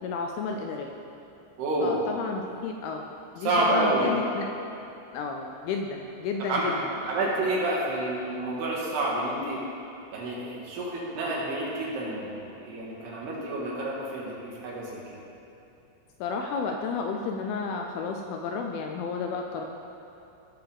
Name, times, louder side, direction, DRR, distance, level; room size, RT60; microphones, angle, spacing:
voice 1, 0.0-0.9 1.8-3.1 3.3-4.5 5.1-7.1 16.2-19.6, left 4 dB, 80° left, 3 dB, 2.3 m, -32 dB
voice 2, 1.6-2.0 3.4-4.1 6.5-6.7 7.1-9.6 10.1-15.2, right 2 dB, 75° right, -5 dB, 3.8 m, -29 dB
16.5 x 7.1 x 3.5 m, 2.9 s
omnidirectional pair, 4.8 m